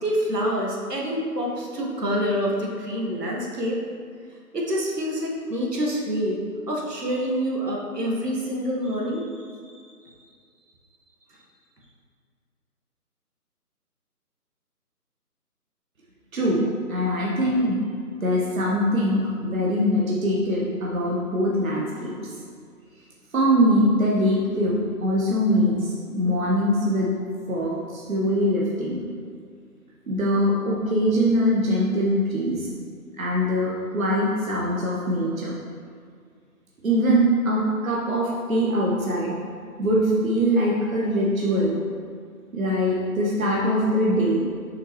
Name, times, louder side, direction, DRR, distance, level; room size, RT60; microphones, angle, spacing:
voice 1, 0.0-3.8 4.5-6.4 6.7-9.3, equal, 85° right, -2 dB, 1.7 m, -26 dB
voice 2, 16.9-17.8 18.2-22.1 23.3-27.1 27.5-29.0 30.1-32.7 33.2-35.5 36.8-39.3 39.8-41.8 42.5-44.5, equal, 60° right, -4 dB, 1.2 m, -22 dB
6.9 x 5.6 x 3.2 m, 2.1 s
figure-of-eight pair, 155°, 47 cm